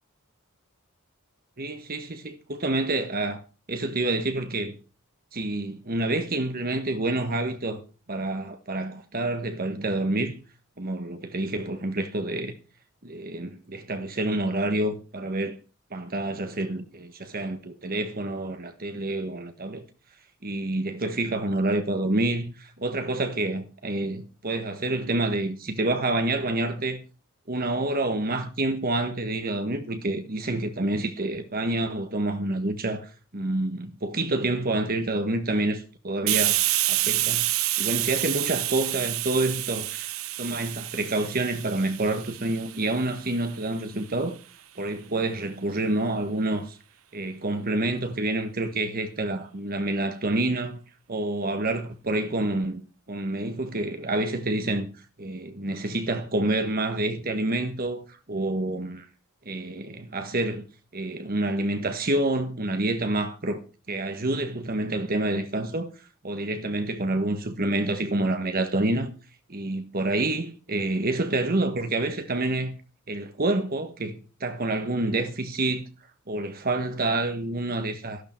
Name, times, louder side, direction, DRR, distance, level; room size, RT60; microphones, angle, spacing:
voice 1, 1.6-3.4 3.7-4.7 5.3-7.8 8.1-10.3 10.8-12.5 13.0-15.6 15.9-19.8 20.4-27.0 27.5-36.6 36.9-37.5 37.8-40.1 40.4-44.4 44.8-46.8 47.1-50.8 51.1-52.8 53.1-54.9 55.2-59.1 59.4-60.7 60.9-63.6 63.9-65.9 66.2-69.1 69.5-72.8 73.1-75.8 76.3-78.2, right 2 dB, 45° right, 1.5 m, -28 dB
Hiss, 36.3-43.7, right 15 dB, 75° right, 0.8 m, -28 dB
13.5 x 12.0 x 4.5 m
head